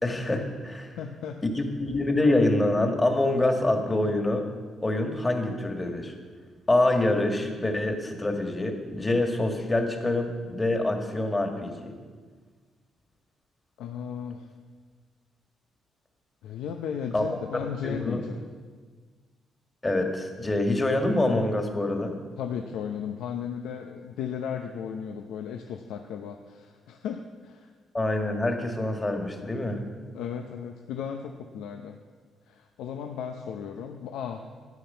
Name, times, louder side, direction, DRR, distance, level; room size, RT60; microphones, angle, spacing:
voice 1, 0.0-1.0 1.4-4.5 4.8-6.1 6.7-11.9 17.1-17.2 17.8-18.2 19.8-22.2 27.9-29.8, left 2 dB, 20° left, 4 dB, 1.9 m, -26 dB
voice 2, 1.0-1.4 13.8-14.5 16.4-18.4 22.4-27.7 30.1-32.0 32.5-34.4, left 7 dB, 90° left, 4 dB, 0.7 m, -35 dB
13.0 x 9.5 x 5.6 m, 1.5 s
cardioid pair, 90°, 0 cm